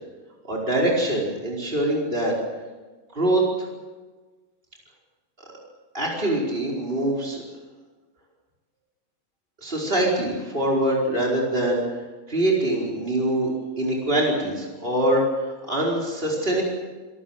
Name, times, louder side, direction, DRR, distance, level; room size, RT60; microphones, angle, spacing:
voice 1, 0.4-2.3 3.1-3.7 5.9-7.4 9.6-11.8 12.3-16.6, right 1 dB, 40° right, -3 dB, 5.2 m, -24 dB
28.5 x 18.0 x 7.5 m, 1.3 s
omnidirectional pair, 1.5 m